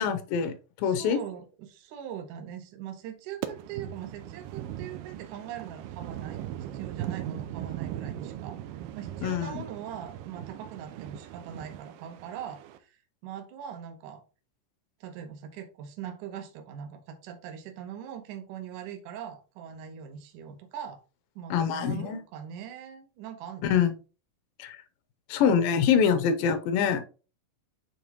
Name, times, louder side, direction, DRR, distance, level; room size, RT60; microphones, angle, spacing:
voice 1, 0.0-1.2 9.2-9.7 21.5-22.2 23.6-23.9 24.6-24.8 25.3-27.0, left 7 dB, 85° left, 9 dB, 2.4 m, -25 dB
voice 2, 0.8-6.4 6.7-8.6 9.0-14.2 15.0-21.0 21.4-23.7, right 9 dB, 70° right, 6 dB, 2.3 m, -41 dB
sound 1, 3.4-12.8, right 12 dB, 85° right, 2.3 m, -39 dB
9.3 x 3.4 x 2.9 m, 0.34 s
omnidirectional pair, 4.0 m